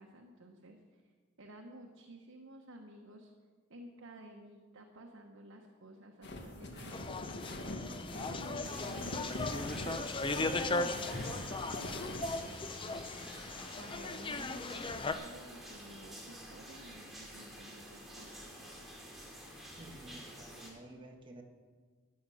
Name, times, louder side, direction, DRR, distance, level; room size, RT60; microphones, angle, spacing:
voice 1, 0.0-3.3 3.7-13.3 13.7-18.5, right 1 dB, 75° right, 1 dB, 1.2 m, -53 dB
sound 1, 6.2-12.3, left 1 dB, 55° left, 1.6 m, -43 dB
sound 2, 6.9-15.1, left 3 dB, 25° left, 0.5 m, -37 dB
sound 3, 8.6-20.7, equal, ahead, 2.5 m, -49 dB
voice 2, 19.8-21.4, right 1 dB, 25° right, 2 dB, 1.5 m, -52 dB
13.5 x 8.8 x 6.3 m, 1.5 s
head